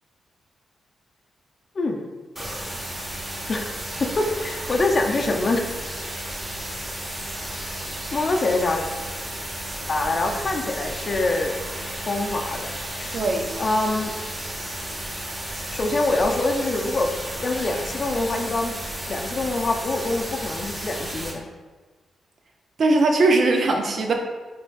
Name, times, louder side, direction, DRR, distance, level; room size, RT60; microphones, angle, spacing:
sound 1, 2.4-21.3, right 1 dB, 20° right, 1.4 m, -33 dB
voice 1, 3.5-5.6 8.1-8.9 9.9-11.5 12.0-13.3 13.6-14.1 15.7-17.1 17.4-18.8 19.1-21.5, left 2 dB, 50° left, 2 dB, 0.5 m, -25 dB
voice 2, 13.1-13.6 22.8-24.1, right 2 dB, 60° right, 3 dB, 0.5 m, -20 dB
4.2 x 3.3 x 2.3 m, 1.3 s
supercardioid pair, 50°, 0 cm